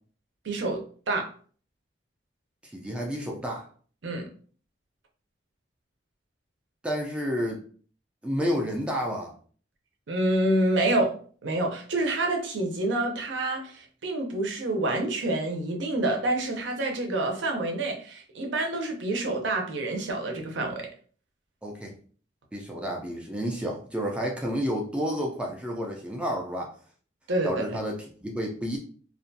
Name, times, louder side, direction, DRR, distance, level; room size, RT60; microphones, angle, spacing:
voice 1, 0.4-1.3 4.0-4.3 10.1-11.1 11.4-20.9 27.3-27.8, right 2 dB, 75° right, 0.6 m, -27 dB
voice 2, 2.6-3.7 6.8-7.6 8.2-9.3 21.6-21.9 22.5-26.7 27.4-28.8, equal, 5° right, 0.3 m, -30 dB
2.4 x 2.2 x 2.6 m
head